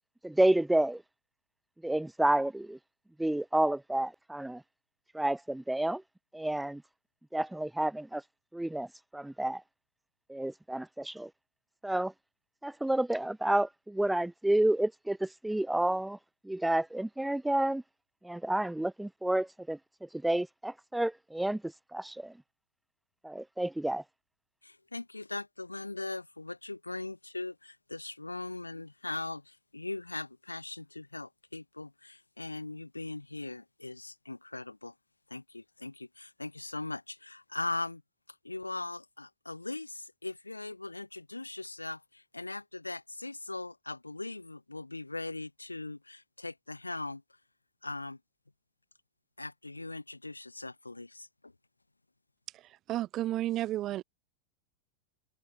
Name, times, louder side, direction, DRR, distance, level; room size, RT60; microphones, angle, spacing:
voice 1, 0.2-1.0 1.8-2.8 3.2-4.6 5.1-6.0 6.3-6.8 7.3-8.2 8.5-8.9 9.1-9.6 10.3-11.3 11.8-12.1 12.6-16.2 16.4-17.8 18.2-19.8 20.2-22.3 23.2-24.0, right 1 dB, 5° right, 0.8 m, -30 dB
voice 2, 24.6-34.9 35.3-38.0 38.4-47.2 47.8-48.2 49.4-51.5, left 2 dB, 85° left, 5.2 m, -40 dB
voice 3, 52.9-54.0, right 14 dB, 35° right, 1.5 m, -32 dB
figure-of-eight pair, 90°, 0 cm